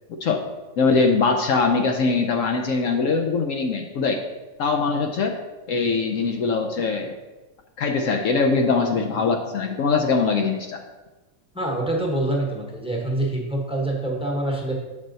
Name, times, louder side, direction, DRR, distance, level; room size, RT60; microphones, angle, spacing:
voice 1, 0.8-4.2 4.6-5.4 5.7-7.2 7.8-10.8, left 4 dB, 70° left, 3 dB, 1.0 m, -22 dB
voice 2, 11.5-14.7, right 1 dB, 5° right, -1 dB, 1.0 m, -25 dB
7.5 x 5.5 x 4.0 m, 1.1 s
omnidirectional pair, 1.5 m